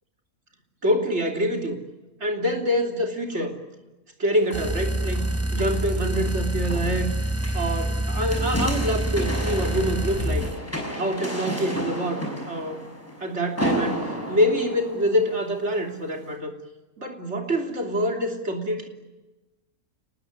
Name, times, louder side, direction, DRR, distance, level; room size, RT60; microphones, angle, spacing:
voice 1, 0.8-1.8 2.2-3.5 4.2-7.1 7.5-10.5 10.9-12.8 13.2-16.5 17.0-18.9, equal, 45° right, 4 dB, 3.4 m, -26 dB
sound 1, 4.4-15.6 16.2-16.3, equal, 10° left, 5.8 m, -33 dB
sound 2, 4.5-10.6, right 1 dB, 10° right, 1.3 m, -26 dB
29.0 x 20.0 x 9.8 m, 1.1 s
omnidirectional pair, 1.7 m